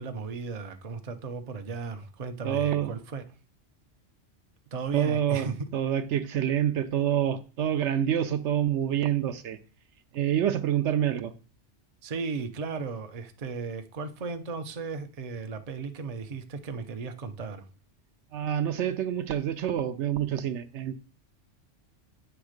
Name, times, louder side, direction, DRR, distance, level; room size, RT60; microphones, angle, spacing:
voice 1, 0.0-3.2 4.7-5.6 12.0-17.6, right 4 dB, 40° right, 8 dB, 0.6 m, -35 dB
voice 2, 2.4-2.9 4.9-9.6 10.1-11.3 18.3-20.9, right 10 dB, 75° right, 10 dB, 0.9 m, -27 dB
8.8 x 3.5 x 6.5 m, 0.36 s
omnidirectional pair, 1.2 m